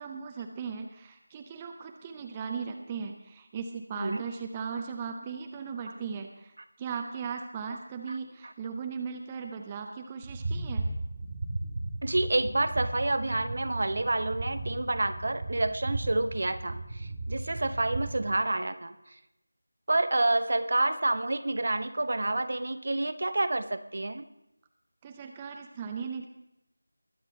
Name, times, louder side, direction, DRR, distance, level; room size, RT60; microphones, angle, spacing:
voice 1, 0.0-6.5 6.8-10.8 25.0-26.3, right 6 dB, 15° right, 4 dB, 0.6 m, -37 dB
sound 1, 10.2-18.3, right 2 dB, 40° right, 1.7 m, -35 dB
voice 2, 12.0-18.9 19.9-24.2, right 2 dB, 55° right, 11 dB, 0.8 m, -28 dB
21.0 x 7.9 x 3.9 m, 0.87 s
figure-of-eight pair, 170°, 0 cm